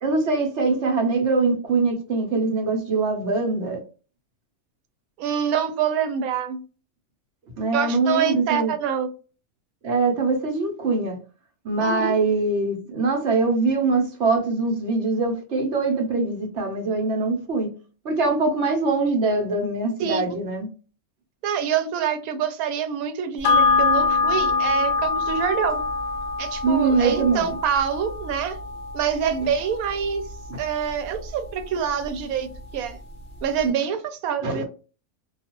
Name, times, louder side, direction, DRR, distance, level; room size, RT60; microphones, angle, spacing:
voice 1, 0.0-3.8 7.6-8.7 9.8-11.2 11.6-17.7 18.0-20.7 26.6-27.6 30.5-30.6 34.4-34.6, right 3 dB, 60° right, 1.0 m, -23 dB
voice 2, 5.2-6.6 7.7-9.1 11.8-12.1 20.0-20.2 21.4-25.8 26.4-28.6 28.9-30.2 30.6-32.5 32.7-33.0 33.4-34.6, right 8 dB, 85° right, 1.0 m, -26 dB
sound 1, 23.4-32.2 32.6-32.7, left 4 dB, 60° left, 0.6 m, -25 dB
2.3 x 2.3 x 2.9 m
omnidirectional pair, 1.5 m